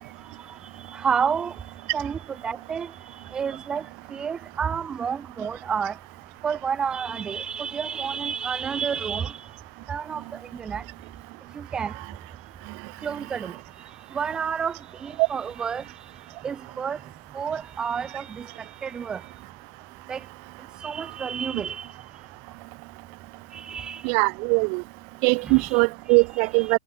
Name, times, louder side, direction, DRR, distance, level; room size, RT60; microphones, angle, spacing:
voice 1, 0.9-1.5 1.9-2.9 3.3-3.8 4.1-5.9 6.4-9.4 9.9-10.8 11.5-11.9 13.0-13.5 14.1-15.8 16.4-17.0 17.3-19.2 20.1-20.2 20.8-21.9 23.5-24.0 25.4-25.8 26.6-26.7, right 7 dB, 15° right, 4.3 m, -30 dB
voice 2, 24.0-24.8 25.2-26.8, right 40 dB or more, 40° right, 1.2 m, -21 dB
hypercardioid pair, 140°, 5 cm